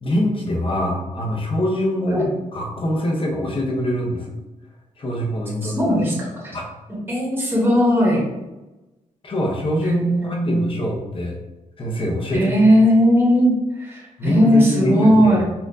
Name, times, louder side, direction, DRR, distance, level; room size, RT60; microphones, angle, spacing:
voice 1, 0.0-4.4 5.0-5.9 6.5-6.6 9.2-11.4 11.8-12.7 14.2-15.4, left 1 dB, 45° left, -2 dB, 1.0 m, -24 dB
voice 2, 5.6-6.5 7.1-8.2 9.8-10.6 12.3-15.4, equal, 15° right, -4 dB, 1.1 m, -17 dB
4.2 x 2.5 x 2.7 m, 1.0 s
cardioid pair, 100°, 13 cm